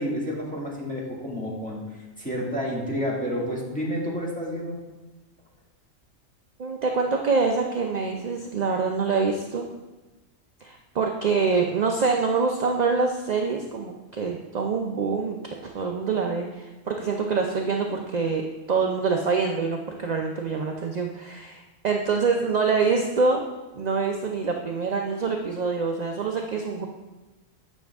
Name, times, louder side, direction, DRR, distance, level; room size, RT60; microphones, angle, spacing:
voice 1, 0.0-4.8, equal, 5° left, -5 dB, 2.0 m, -30 dB
voice 2, 6.6-9.7 10.6-15.4 15.6-23.4 23.7-26.8, right 4 dB, 50° right, 2 dB, 0.5 m, -25 dB
9.3 x 6.2 x 3.5 m, 1.1 s
omnidirectional pair, 1.3 m